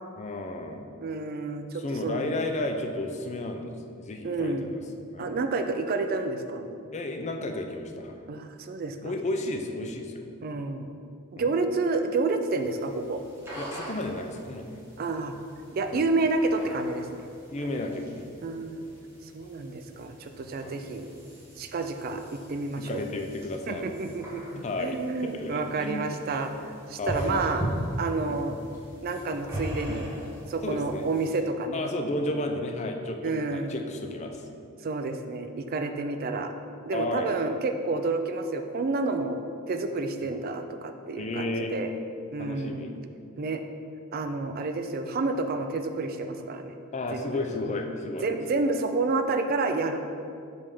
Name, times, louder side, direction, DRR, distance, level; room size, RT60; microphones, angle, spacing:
voice 1, 0.2-0.9 1.8-4.8 5.1-5.4 6.9-8.3 9.0-10.2 11.4-11.6 13.6-14.8 15.9-16.0 17.5-18.3 20.6-20.8 22.8-23.9 24.6-26.1 27.0-27.4 28.3-28.4 29.9-30.0 30.6-31.0 31.7-34.5 36.9-37.3 41.2-41.8 42.4-42.9 46.9-48.7, left 2 dB, 30° left, 4 dB, 0.4 m, -33 dB
voice 2, 1.0-2.3 4.2-4.7 5.2-6.8 8.3-9.0 10.4-10.9 11.3-13.2 15.0-15.3 15.7-17.2 18.4-18.8 19.2-21.1 21.6-23.0 23.7-27.6 28.0-28.5 29.0-30.1 30.5-31.8 33.2-33.7 34.8-36.5 36.9-39.4 39.7-41.9 42.3-42.9 43.4-43.6 44.1-46.7 47.1-47.5 48.2-50.0, right 3 dB, 40° right, 7 dB, 0.3 m, -29 dB
sound 1, 12.6-31.4, equal, 10° right, 1.2 m, -41 dB
5.3 x 3.4 x 5.4 m, 2.5 s
head